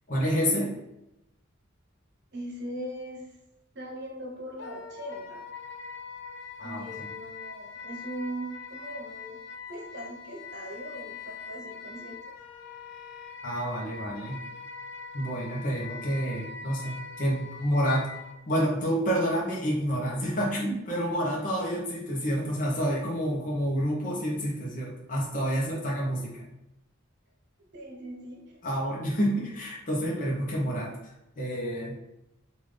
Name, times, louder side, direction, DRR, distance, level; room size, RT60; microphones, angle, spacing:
voice 1, 0.1-0.7 6.6-7.1 13.4-14.4 15.1-18.1 18.5-26.5 28.6-30.9 31.4-32.0, equal, 40° left, -4 dB, 0.9 m, -29 dB
voice 2, 2.3-3.3 3.7-5.5 6.6-9.4 9.7-12.2 27.7-28.5, right 1 dB, 55° right, -1 dB, 0.9 m, -40 dB
Wind instrument woodwind instrument, 4.6-18.4, left 5 dB, 60° left, 0.4 m, -43 dB
3.6 x 2.5 x 3.3 m, 0.88 s
head